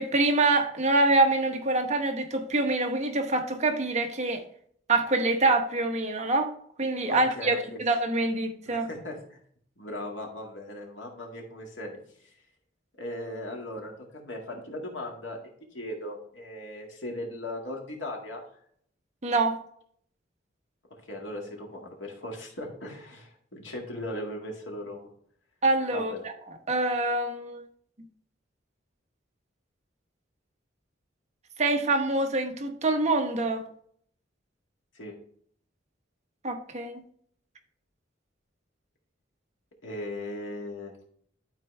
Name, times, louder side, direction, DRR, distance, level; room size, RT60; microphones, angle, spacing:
voice 1, 0.0-4.4 4.9-6.5 6.8-8.9 19.2-19.6 25.6-26.1 26.7-27.6 31.6-33.6 36.4-37.0, right 2 dB, 40° right, 4 dB, 1.0 m, -25 dB
voice 2, 7.1-7.8 8.7-9.4 9.8-12.0 12.9-15.4 15.7-18.4 21.1-25.1 25.9-26.3 34.9-35.1 39.8-40.9, left 1 dB, 80° left, 0 dB, 2.0 m, -38 dB
12.0 x 4.4 x 3.2 m, 0.62 s
head